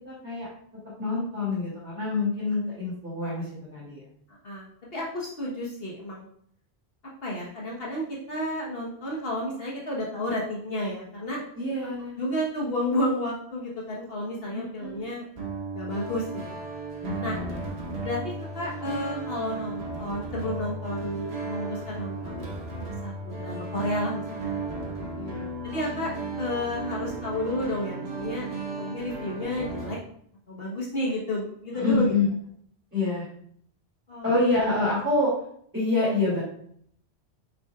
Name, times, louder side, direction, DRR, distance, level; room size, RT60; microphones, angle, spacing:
voice 1, 0.0-0.5 1.0-4.0 11.5-12.2 14.5-15.0 17.0-17.7 25.2-25.5 31.8-32.2 32.9-33.3 34.2-35.3 35.7-36.4, left 2 dB, 10° right, -10 dB, 2.4 m, -27 dB
voice 2, 4.4-6.3 7.2-11.4 12.2-16.5 17.2-17.4 18.0-25.1 25.7-28.5 28.8-30.0 30.5-32.1 34.1-34.3, left 1 dB, 65° left, -4 dB, 1.4 m, -31 dB
sound 1, 15.4-30.0, right 3 dB, 75° right, 1.5 m, -35 dB
6.8 x 6.4 x 2.4 m, 0.66 s
omnidirectional pair, 1.1 m